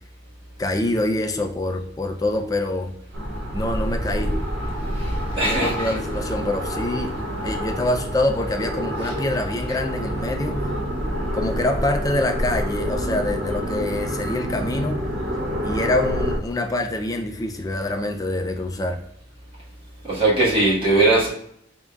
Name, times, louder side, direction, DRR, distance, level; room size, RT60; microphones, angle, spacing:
voice 1, 0.6-2.9 3.5-4.4 5.4-7.2 7.4-10.6 11.3-15.0 15.6-19.0, left 1 dB, 20° left, 5 dB, 0.4 m, -25 dB
sound 1, 3.1-16.4, equal, 70° right, 0.6 m, -27 dB
voice 2, 4.9-5.9 20.0-21.3, right 2 dB, 25° right, -7 dB, 1.6 m, -20 dB
4.0 x 3.6 x 2.3 m, 0.70 s
head